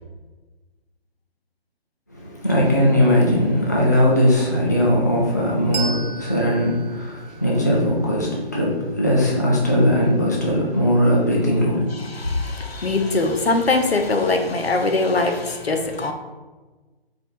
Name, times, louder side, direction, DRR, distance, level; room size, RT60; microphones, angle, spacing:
voice 1, 2.1-12.3, equal, 20° left, -4 dB, 0.4 m, -19 dB
Bell, 5.7-8.8, right 5 dB, 40° right, 0.5 m, -35 dB
voice 2, 12.0-16.1, left 3 dB, 80° left, 5 dB, 0.8 m, -22 dB
4.2 x 2.8 x 4.2 m, 1.2 s
figure-of-eight pair, 145°, 31 cm